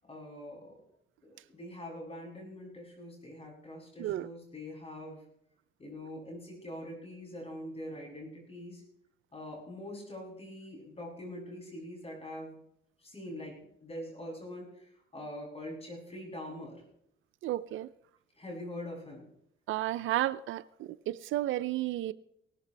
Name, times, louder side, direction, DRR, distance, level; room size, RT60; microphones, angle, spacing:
voice 1, 0.0-0.8 1.2-5.2 5.8-8.8 9.3-12.6 13.0-16.8 18.3-19.3, left 1 dB, 30° left, 7.8 m, -44 dB
voice 2, 17.4-17.9 19.7-22.1, right 14 dB, 80° right, 0.5 m, -32 dB
19.0 x 14.0 x 3.4 m
cardioid pair, 90°, 20 cm